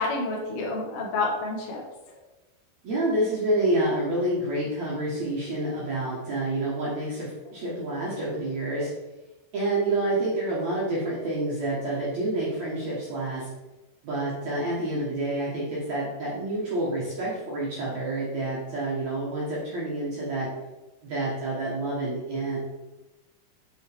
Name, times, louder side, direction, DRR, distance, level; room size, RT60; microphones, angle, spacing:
voice 1, 0.0-2.2, left 3 dB, 85° left, -2 dB, 1.2 m, -29 dB
voice 2, 2.8-8.9 9.5-13.5 14.0-20.5 21.0-22.6, right 1 dB, 60° right, -6 dB, 2.0 m, -28 dB
7.3 x 5.5 x 3.6 m, 1.1 s
omnidirectional pair, 5.0 m